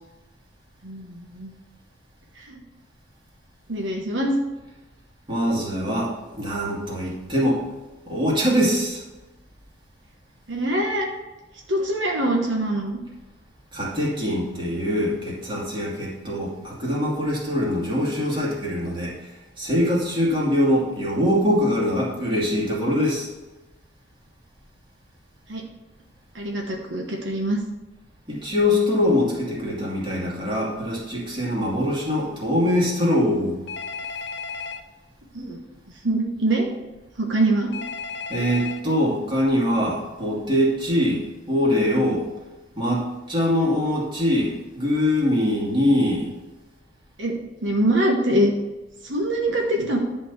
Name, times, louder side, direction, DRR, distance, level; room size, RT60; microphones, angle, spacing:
voice 1, 0.8-1.5 2.4-2.6 3.7-4.3 10.5-11.0 11.7-13.0 25.5-25.6 26.3-27.6 35.3-35.6 36.0-36.7 37.2-37.7 47.2-47.4 47.6-48.5 49.0-50.0, right 1 dB, 75° right, 0 dB, 1.3 m, -23 dB
voice 2, 5.3-7.6 8.1-9.0 13.7-19.2 19.6-23.3 28.3-33.6 38.3-42.3 42.8-46.3, left 1 dB, 25° right, -5 dB, 2.6 m, -23 dB
Telephone, 33.7-34.8 37.7-38.8, left 5 dB, 60° left, 0.7 m, -33 dB
11.0 x 4.5 x 6.8 m, 1.1 s
head